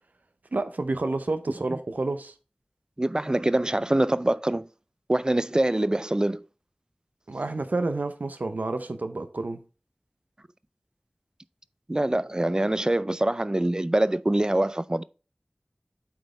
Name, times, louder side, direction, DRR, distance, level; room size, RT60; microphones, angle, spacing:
voice 1, 0.5-2.3 7.3-9.6, right 2 dB, 85° right, 0.7 m, -29 dB
voice 2, 3.0-4.7 5.1-6.4 11.9-15.0, right 1 dB, 25° right, 0.4 m, -24 dB
8.7 x 4.2 x 3.3 m
wide cardioid pair, 45°, 3 cm